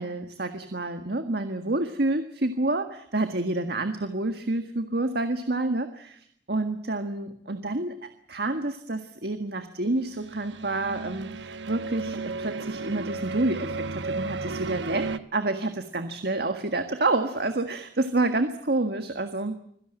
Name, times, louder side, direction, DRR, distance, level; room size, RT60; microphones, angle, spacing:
voice 1, 0.0-7.9 8.3-15.0 15.3-19.5, right 2 dB, 60° right, 7 dB, 1.7 m, -28 dB
sound 1, 10.1-15.2, right 3 dB, 80° right, 1.0 m, -34 dB
26.0 x 17.0 x 8.9 m, 0.70 s
head